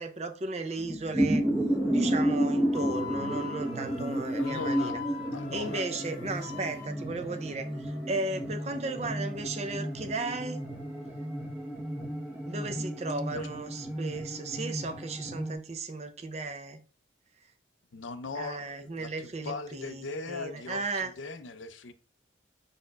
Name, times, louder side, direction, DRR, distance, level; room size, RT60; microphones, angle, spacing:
voice 1, 0.0-1.4 1.9-5.0 5.5-10.6 12.5-16.8 18.4-21.1, right 3 dB, 35° right, 0.5 m, -35 dB
sound 1, 0.8-15.5, right 1 dB, 10° right, 0.8 m, -32 dB
Wind instrument woodwind instrument, 2.7-6.9, left 9 dB, 25° left, 1.0 m, -42 dB
voice 2, 4.4-5.0 5.3-5.9 12.7-12.8 13.3-13.5 17.9-21.9, left 3 dB, 85° left, 0.6 m, -39 dB
5.0 x 4.3 x 2.3 m
head